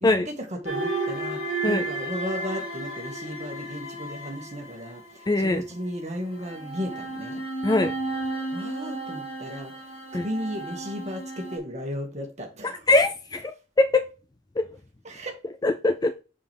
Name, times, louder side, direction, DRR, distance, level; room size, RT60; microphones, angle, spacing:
voice 1, 0.0-7.4 8.5-9.7 10.1-12.9 15.0-15.4, equal, 35° right, 1.8 m, -35 dB
sound 1, 0.6-5.4 6.3-11.6, right 2 dB, 90° left, 2.4 m, -33 dB
voice 2, 5.3-5.6 7.6-7.9 10.1-10.3 12.6-13.5 13.8-14.1 14.6-14.7 15.6-16.2, left 2 dB, 20° left, 0.3 m, -22 dB
6.9 x 5.1 x 3.4 m
head